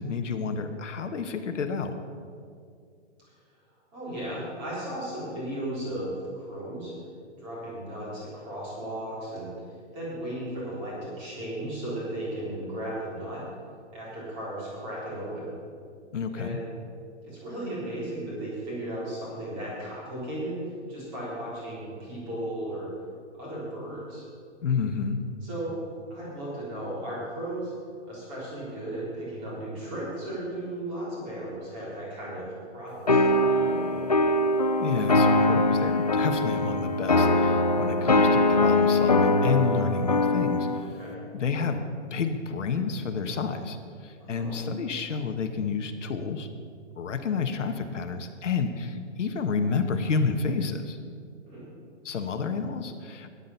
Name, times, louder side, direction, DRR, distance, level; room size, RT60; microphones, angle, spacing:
voice 1, 0.0-2.0 16.1-16.6 24.6-25.2 34.8-41.0 41.3-46.5 47.0-51.0 52.0-53.3, left 5 dB, 80° left, 6 dB, 1.4 m, -30 dB
voice 2, 3.9-6.9 7.4-9.5 9.9-13.4 13.9-15.5 16.3-16.7 17.2-20.5 20.9-22.9 23.4-24.3 25.4-25.8 26.1-27.7 28.1-34.0 40.7-41.2 41.6-41.7 44.2-44.6 51.5-51.6, right 1 dB, 15° right, -7 dB, 3.5 m, -35 dB
sound 1, 33.1-40.9, left 2 dB, 35° left, 0.4 m, -22 dB
14.0 x 10.0 x 5.6 m, 2.3 s
hypercardioid pair, 180°, 36 cm